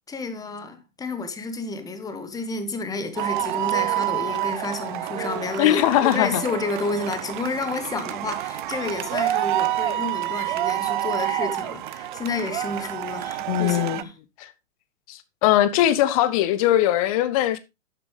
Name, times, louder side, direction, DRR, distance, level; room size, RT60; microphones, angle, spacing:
voice 1, 0.1-14.1, left 3 dB, 10° left, 1.4 m, -30 dB
sound 1, 3.2-14.0, right 14 dB, 40° right, 0.7 m, -28 dB
voice 2, 5.6-6.4 13.5-14.0 14.4-14.5 15.1-17.6, left 13 dB, 30° left, 0.8 m, -20 dB
12.0 x 9.4 x 3.2 m
figure-of-eight pair, 120°, 39 cm